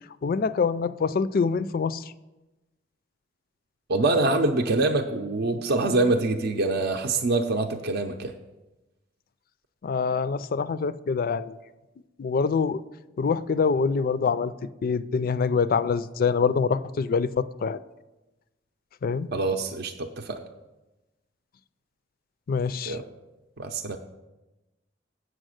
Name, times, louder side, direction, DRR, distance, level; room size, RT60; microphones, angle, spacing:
voice 1, 0.2-2.0 9.8-11.6 12.2-12.8 13.2-14.5 14.8-17.8 19.0-19.3 22.5-23.0, left 5 dB, 50° left, 15 dB, 0.4 m, -25 dB
voice 2, 3.9-8.3 19.3-20.4 22.9-23.0 23.6-24.0, right 2 dB, 60° right, 4 dB, 0.6 m, -25 dB
8.3 x 6.4 x 6.4 m, 1.0 s
head